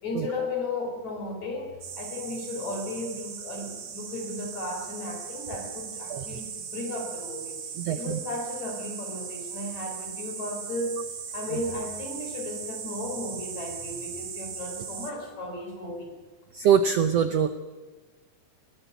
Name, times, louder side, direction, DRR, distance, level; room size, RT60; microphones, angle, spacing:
voice 1, 0.0-7.6 7.9-11.0 11.3-16.1, left 2 dB, 50° left, 3 dB, 5.6 m, -35 dB
sound 1, 1.8-15.1, right 7 dB, 45° right, 2.3 m, -38 dB
voice 2, 7.8-8.2 16.5-17.5, right 7 dB, 85° right, 10 dB, 1.4 m, -23 dB
21.5 x 17.5 x 8.3 m, 1.3 s
omnidirectional pair, 4.1 m